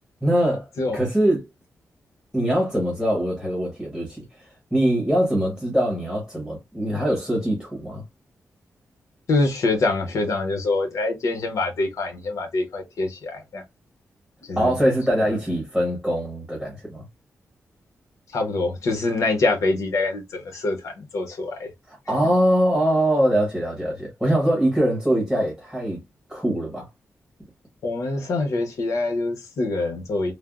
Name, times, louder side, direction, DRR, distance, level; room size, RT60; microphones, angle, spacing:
voice 1, 0.2-0.7 0.9-1.5 2.3-8.0 14.6-17.1 21.9-26.0 26.3-26.9, right 1 dB, ahead, 1.1 m, -23 dB
voice 2, 9.3-13.6 14.5-14.7 18.3-21.7 27.8-30.3, left 3 dB, 85° left, 0.9 m, -25 dB
3.3 x 2.1 x 2.4 m
wide cardioid pair, 140°, 5 cm